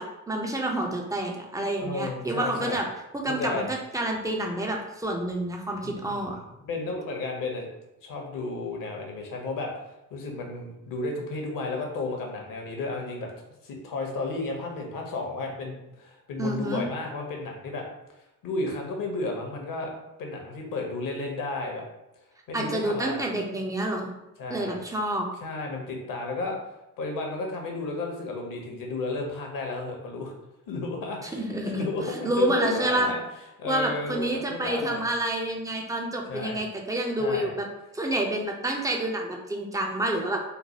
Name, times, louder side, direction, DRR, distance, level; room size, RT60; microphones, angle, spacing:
voice 1, 0.0-2.9 3.1-6.4 16.4-16.8 22.5-24.1 24.5-25.2 31.2-33.1 33.6-37.7 37.9-40.4, right 1 dB, 10° right, 0 dB, 0.4 m, -28 dB
voice 2, 1.8-2.8 3.2-3.7 5.8-6.2 6.6-7.7 8.0-9.7 10.1-13.3 13.6-17.9 18.4-19.9 20.2-21.9 22.5-23.2 24.4-24.8 25.4-26.6 27.0-30.3 30.7-31.4 31.6-33.2 33.6-35.0 36.3-36.6 37.2-37.5, left 3 dB, 45° left, 1 dB, 0.8 m, -33 dB
3.1 x 2.1 x 2.9 m, 0.91 s
figure-of-eight pair, 45°, 45 cm